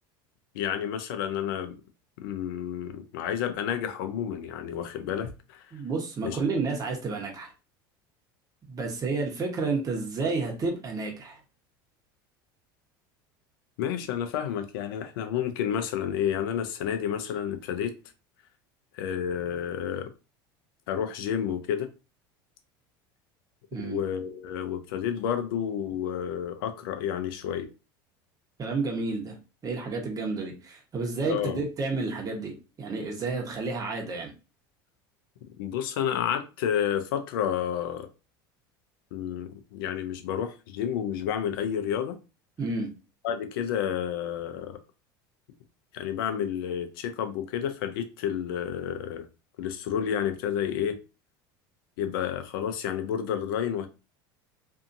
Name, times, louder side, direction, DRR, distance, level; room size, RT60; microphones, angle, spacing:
voice 1, 0.5-1.7 2.2-5.6 6.2-6.4 13.8-17.9 18.9-20.1 20.9-21.9 23.8-27.7 31.3-31.6 35.6-38.1 39.1-42.2 43.2-44.8 45.9-49.3 49.6-51.0 52.0-53.9, left 9 dB, 75° left, 0.6 m, -30 dB
voice 2, 5.7-7.5 8.7-11.4 23.7-24.0 28.6-29.3 29.6-34.3 42.6-42.9, right 3 dB, 30° right, 1.0 m, -30 dB
2.7 x 2.6 x 2.6 m
hypercardioid pair, 90°, 12 cm